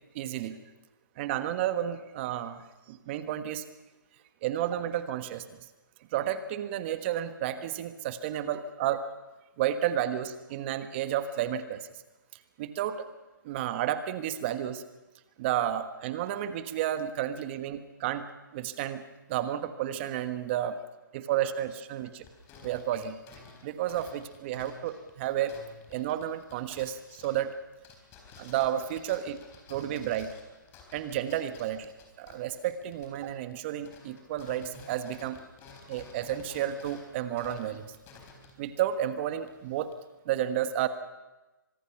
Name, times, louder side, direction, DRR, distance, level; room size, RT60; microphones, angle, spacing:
voice 1, 0.1-0.6 1.2-3.6 4.4-5.4 6.1-9.0 9.6-11.9 12.6-13.1 13.4-14.8 15.4-18.3 18.5-20.8 21.1-22.2 22.6-23.2 23.6-25.5 25.9-27.5 28.4-29.4 29.7-30.3 30.9-31.9 32.2-35.4 35.9-37.9 38.6-39.9 40.2-40.9, right 11 dB, 30° right, 10 dB, 1.5 m, -31 dB
sound 1, 21.9-33.6 33.8-40.0, left 4 dB, 20° left, 3.9 m, -53 dB
25.0 x 20.0 x 6.0 m, 1.1 s
hypercardioid pair, 145°, 11 cm